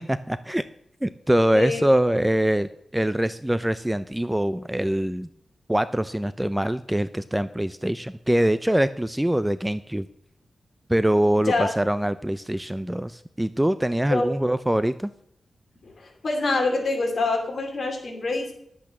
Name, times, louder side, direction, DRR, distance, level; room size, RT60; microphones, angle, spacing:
voice 1, 0.1-0.6 1.0-5.3 5.7-10.1 10.9-15.1, right 1 dB, 5° right, 13 dB, 0.4 m, -23 dB
voice 2, 15.8-18.5, left 3 dB, 50° left, 2 dB, 2.9 m, -25 dB
10.5 x 8.2 x 6.1 m, 0.70 s
wide cardioid pair, 145°, 0 cm